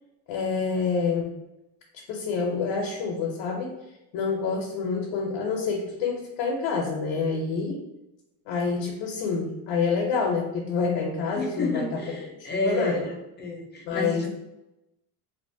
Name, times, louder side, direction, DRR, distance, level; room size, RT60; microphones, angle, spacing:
voice 1, 0.3-1.3 1.9-3.8 4.1-7.8 8.5-13.1 13.9-14.3, left 5 dB, 75° left, 1 dB, 0.6 m, -27 dB
voice 2, 11.3-14.3, left 2 dB, 25° left, 0 dB, 0.5 m, -31 dB
2.4 x 2.1 x 2.5 m, 0.93 s
cardioid pair, 95°, 45 cm